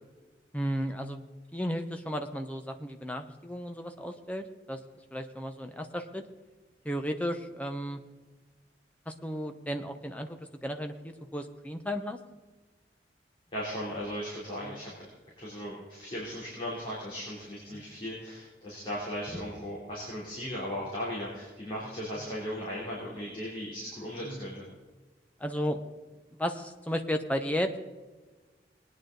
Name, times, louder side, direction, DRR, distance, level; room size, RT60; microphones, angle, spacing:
voice 1, 0.5-1.2 1.5-4.8 5.1-6.2 6.8-8.0 9.1-12.2 14.6-14.8 17.7-17.9 22.2-22.3 24.2-24.5 25.4-25.8 26.3-27.8, equal, 10° left, 5 dB, 0.9 m, -34 dB
voice 2, 13.5-14.9 15.4-24.7, equal, 30° left, -6 dB, 3.4 m, -37 dB
20.0 x 9.5 x 3.9 m, 1.3 s
head